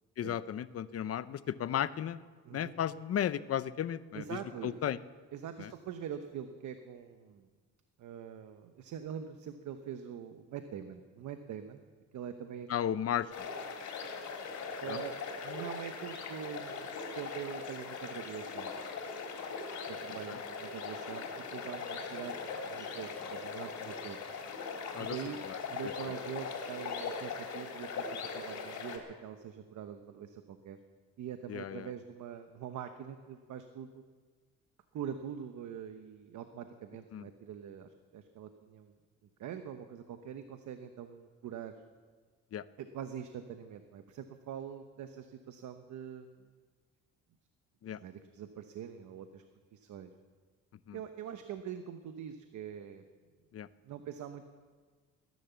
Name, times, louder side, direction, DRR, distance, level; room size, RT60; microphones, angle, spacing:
voice 1, 0.2-2.2 2.5-5.0 5.6-5.7 12.7-13.3 14.9-15.0 20.3-20.4 24.9-25.1 25.4-25.9 31.5-31.9 37.1-37.3 42.5-42.6 47.8-48.0 50.9-51.0 53.5-53.7, left 10 dB, 50° left, 15 dB, 0.7 m, -35 dB
voice 2, 2.4-2.8 4.1-4.8 5.3-7.5 8.0-11.9 12.1-12.7 13.2-13.3 14.8-15.2 15.4-18.8 19.9-22.4 22.7-24.2 25.0-25.4 25.7-30.8 31.2-34.1 34.9-39.0 39.4-41.8 42.8-46.5 47.9-49.4 49.7-50.1 50.9-53.0 53.8-54.5, right 8 dB, 75° right, 8 dB, 1.0 m, -44 dB
sound 1, 13.3-29.0, left 5 dB, 75° left, 3.3 m, -40 dB
19.5 x 10.5 x 7.0 m, 1.5 s
cardioid pair, 90°, 30 cm